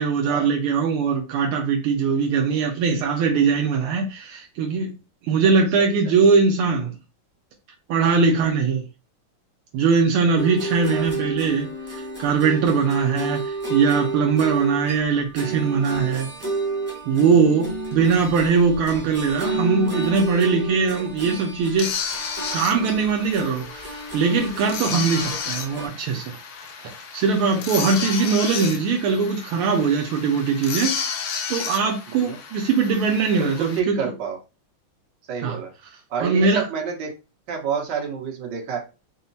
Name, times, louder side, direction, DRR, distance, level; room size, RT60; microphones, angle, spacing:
voice 1, 0.0-4.9 5.2-6.9 7.9-8.8 9.7-16.3 17.0-21.9 22.5-26.4 26.8-31.1 31.5-34.0 35.4-35.6 36.2-36.7, right 5 dB, 80° right, 1.6 m, -21 dB
sound 1, 10.4-25.9, right 2 dB, 5° right, 0.9 m, -31 dB
sound 2, 21.8-33.8, left 6 dB, 80° left, 1.6 m, -32 dB
voice 2, 28.0-28.3 32.1-32.4 33.4-34.4 35.3-35.7 36.1-37.1 37.5-38.8, right 6 dB, 60° right, 1.7 m, -29 dB
4.6 x 2.1 x 4.0 m
omnidirectional pair, 2.4 m